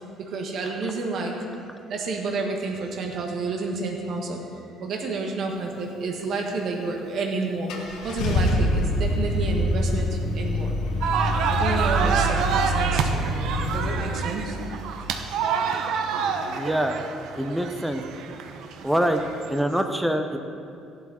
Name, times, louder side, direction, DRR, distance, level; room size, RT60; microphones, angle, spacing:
voice 1, 0.3-1.3 1.9-4.4 4.8-10.8 11.5-13.3 13.7-14.6, right 3 dB, 45° right, 1 dB, 1.7 m, -30 dB
Car / Engine starting, 7.0-7.1 7.7-13.9, equal, 70° left, 1.8 m, -25 dB
sound 1, 11.0-19.6, right 6 dB, 60° right, 0.9 m, -28 dB
voice 2, 16.5-17.0 17.4-18.0 18.8-20.4, equal, ahead, 6 dB, 0.6 m, -25 dB
15.0 x 11.5 x 4.3 m, 2.5 s
cardioid pair, 175°, 0 cm